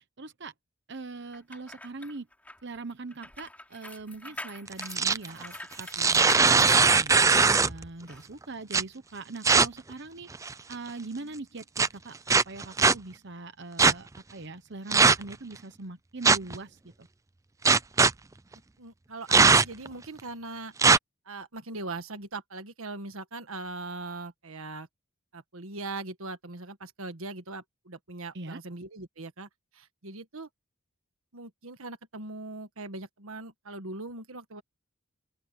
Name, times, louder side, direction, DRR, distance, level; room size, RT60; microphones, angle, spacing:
voice 1, 0.2-0.5 0.9-2.3 2.6-7.2 7.6-10.3 10.7-17.1 28.3-28.6, right 3 dB, 55° right, 1.0 m, -41 dB
sound 1, 1.3-7.6 8.1-8.2, left 1 dB, 5° left, 3.8 m, -44 dB
sound 2, 4.7-5.3 5.8-7.8 8.7-8.8 9.4-9.7 10.3-10.7 11.8-11.9 12.3-12.9 13.8-13.9 14.9-15.3 16.2-16.6 17.7-18.1 19.3-19.9 20.8-21.0, right 4 dB, 15° right, 0.4 m, -20 dB
voice 2, 18.8-20.7 21.2-24.9 25.3-29.5 29.7-30.5 31.3-34.6, right 2 dB, 70° right, 1.6 m, -40 dB
open air
head